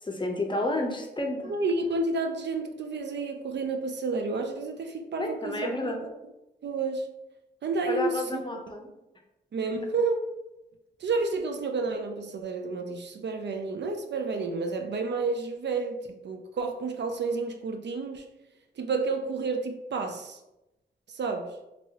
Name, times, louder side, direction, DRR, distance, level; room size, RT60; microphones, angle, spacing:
voice 1, 0.0-1.5 5.2-6.0 7.9-8.9, left 2 dB, 25° left, 2 dB, 0.6 m, -30 dB
voice 2, 1.5-6.0 6.6-7.1 7.6-8.4 9.5-10.2 11.0-18.3 18.8-20.4 21.1-21.6, right 3 dB, 65° right, 5 dB, 0.4 m, -30 dB
3.0 x 2.7 x 2.8 m, 0.94 s
cardioid pair, 65°, 20 cm